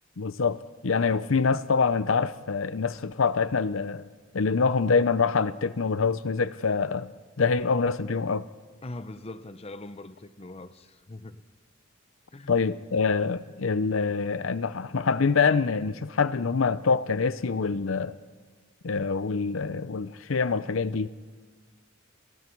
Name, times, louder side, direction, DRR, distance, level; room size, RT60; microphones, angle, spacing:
voice 1, 0.2-4.1 4.3-7.1 7.4-8.5 12.5-18.1 18.8-21.1, left 5 dB, 75° left, 0.7 m, -25 dB
voice 2, 8.8-11.4 12.3-12.5, left 2 dB, 30° left, 0.8 m, -41 dB
30.0 x 22.5 x 4.6 m
head